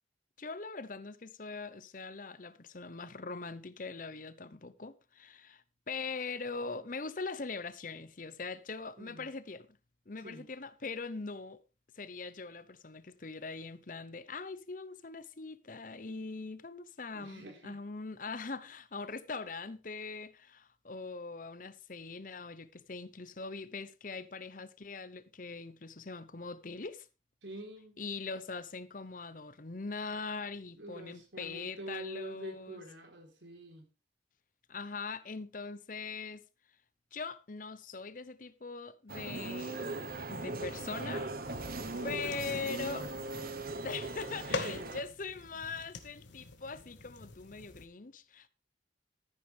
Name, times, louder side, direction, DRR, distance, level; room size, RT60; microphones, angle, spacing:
voice 1, 0.4-9.8 10.1-11.6 11.9-27.1 28.0-32.8 34.7-36.5 37.1-40.0 40.3-41.3 42.0-43.0 43.8-48.5, left 4 dB, 45° left, 0.9 m, -42 dB
voice 2, 9.0-9.3 10.2-10.5 17.1-17.8 27.4-28.0 30.8-33.9 41.9-43.1 44.5-44.9, right 1 dB, 90° right, 4.0 m, -46 dB
sound 1, 39.1-45.0, right 2 dB, 50° right, 1.1 m, -39 dB
sound 2, 41.4-47.9, left 3 dB, 85° left, 1.7 m, -45 dB
14.0 x 9.7 x 3.5 m
head